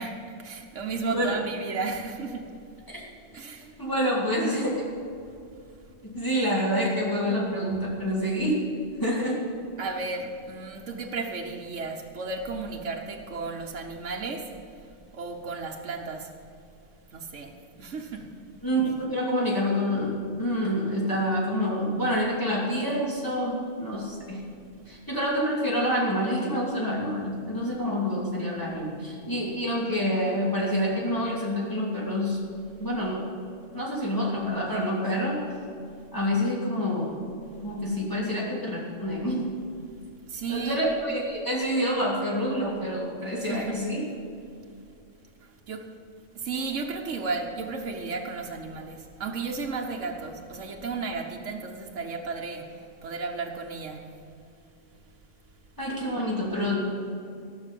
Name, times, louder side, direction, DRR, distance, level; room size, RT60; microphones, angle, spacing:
voice 1, 0.0-2.4 3.3-3.6 9.8-14.5 15.1-16.3 17.1-18.3 40.3-40.8 43.5-43.8 45.7-45.8 46.3-54.0, right 4 dB, 80° right, 1 dB, 1.4 m, -34 dB
voice 2, 3.8-4.8 6.0-8.6 9.0-9.4 18.6-24.4 24.9-32.4 32.8-33.2 33.7-35.3 36.1-37.2 37.6-39.5 40.5-44.0 55.8-56.8, equal, 15° left, -6 dB, 2.8 m, -27 dB
18.0 x 6.3 x 7.5 m, 2.6 s
omnidirectional pair, 1.2 m